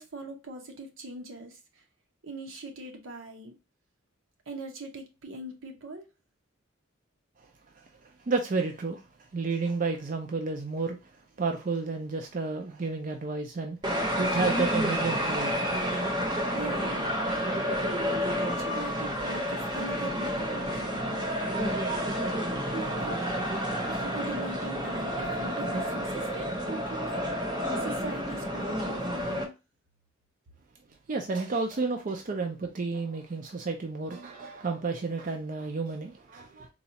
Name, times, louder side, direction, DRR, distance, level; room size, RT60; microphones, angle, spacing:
voice 1, 0.0-1.6 2.2-3.5 4.5-6.1 16.5-17.1 17.6-21.3 22.7-23.2 23.9-27.1 27.8-29.5, right 2 dB, 80° right, 0.9 m, -41 dB
voice 2, 8.0-9.0 9.3-11.0 11.4-15.5 31.1-36.7, right 4 dB, 40° right, 0.4 m, -31 dB
sound 1, 13.8-29.4, equal, 20° right, 0.7 m, -30 dB
4.0 x 2.3 x 2.8 m
head